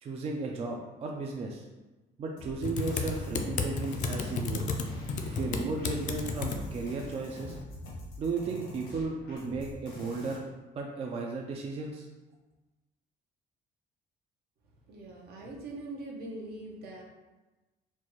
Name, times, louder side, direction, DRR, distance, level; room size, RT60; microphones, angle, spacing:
voice 1, 0.0-1.6 2.2-4.7 5.2-7.6 8.2-10.4 10.7-12.1, right 3 dB, 35° right, 0 dB, 0.4 m, -35 dB
sound 1, 2.4-10.4, left 1 dB, 85° left, 1.1 m, -45 dB
Typing, 2.6-7.6, left 4 dB, 45° left, 0.4 m, -34 dB
voice 2, 14.9-17.0, right 2 dB, 70° right, -2 dB, 0.9 m, -42 dB
4.4 x 2.3 x 3.0 m, 1.1 s
cardioid pair, 110°, 17 cm